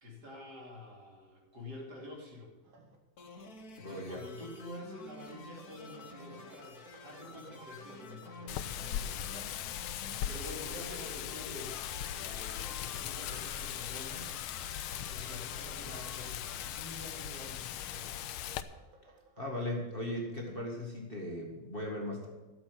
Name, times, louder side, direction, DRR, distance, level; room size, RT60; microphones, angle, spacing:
voice 1, 0.0-2.5 3.5-14.3 14.6-18.2, left 1 dB, 50° right, -2 dB, 3.6 m, -48 dB
sound 1, 2.6-3.0 5.4-19.4, right 2 dB, 75° right, 2.5 m, -59 dB
sound 2, 3.2-16.8, left 3 dB, 50° left, 1.6 m, -51 dB
voice 2, 3.8-4.2 19.4-22.3, left 1 dB, 25° left, -2 dB, 2.0 m, -38 dB
Wind, 8.5-18.6, left 10 dB, 85° left, 1.5 m, -39 dB
13.0 x 7.5 x 6.6 m, 1.2 s
omnidirectional pair, 2.3 m